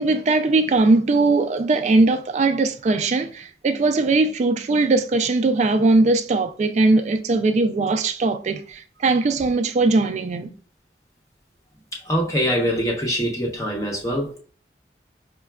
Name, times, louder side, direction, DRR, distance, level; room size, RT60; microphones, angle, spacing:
voice 1, 0.0-10.5, right 3 dB, 40° right, 0.3 m, -20 dB
voice 2, 12.1-14.4, equal, 20° left, 0.9 m, -23 dB
5.7 x 2.1 x 2.3 m
head